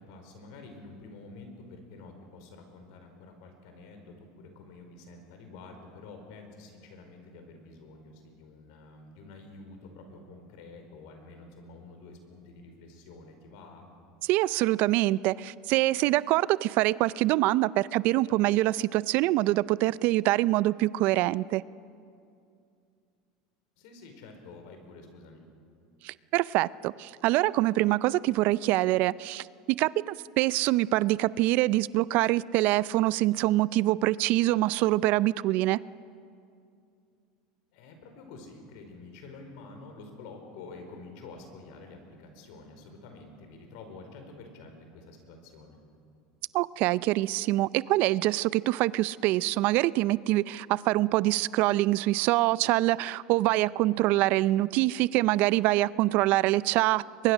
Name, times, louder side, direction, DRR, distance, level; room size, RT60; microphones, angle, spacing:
voice 1, 0.0-13.9 23.8-25.5 37.7-45.8, left 3 dB, 70° left, 5 dB, 4.8 m, -48 dB
voice 2, 14.3-21.6 26.0-35.8 46.5-57.3, right 17 dB, 55° right, 20 dB, 0.4 m, -25 dB
23.0 x 22.5 x 6.3 m, 2.5 s
supercardioid pair, 115°, 3 cm